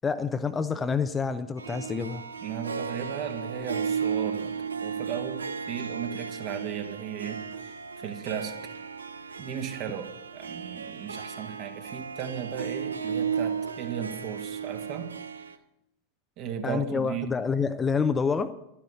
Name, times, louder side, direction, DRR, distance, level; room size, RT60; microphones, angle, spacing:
voice 1, 0.0-2.2 16.6-18.5, left 5 dB, 15° left, 10 dB, 0.6 m, -27 dB
Harp, 1.6-15.6, right 6 dB, 75° right, 0.6 m, -34 dB
voice 2, 2.4-8.7 9.4-15.1 16.4-17.3, right 8 dB, 40° right, 6 dB, 1.6 m, -36 dB
12.0 x 10.5 x 7.1 m, 0.84 s
figure-of-eight pair, 90°, 0 cm